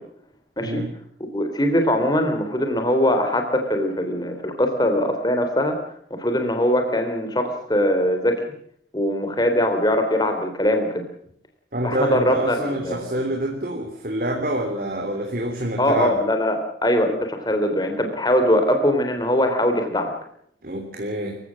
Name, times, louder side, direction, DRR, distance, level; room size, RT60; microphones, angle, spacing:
voice 1, 0.6-0.9 11.7-16.2 20.6-21.4, right 1 dB, 50° right, 3 dB, 3.3 m, -27 dB
voice 2, 1.2-5.8 6.1-8.4 8.9-11.0 11.8-13.0 15.8-20.1, equal, 20° left, 5 dB, 3.5 m, -21 dB
26.5 x 16.0 x 7.5 m, 0.65 s
head